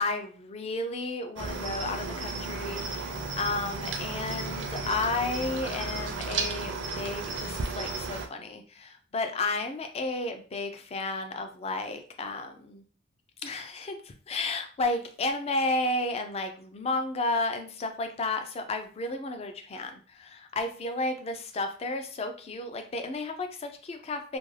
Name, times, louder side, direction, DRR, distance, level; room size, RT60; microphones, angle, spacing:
voice 1, 0.0-12.8 13.4-24.4, left 2 dB, 30° left, 6 dB, 0.4 m, -32 dB
Cricket, 1.4-8.3, right 3 dB, 65° right, 0.5 m, -34 dB
2.5 x 2.2 x 3.2 m, 0.40 s
head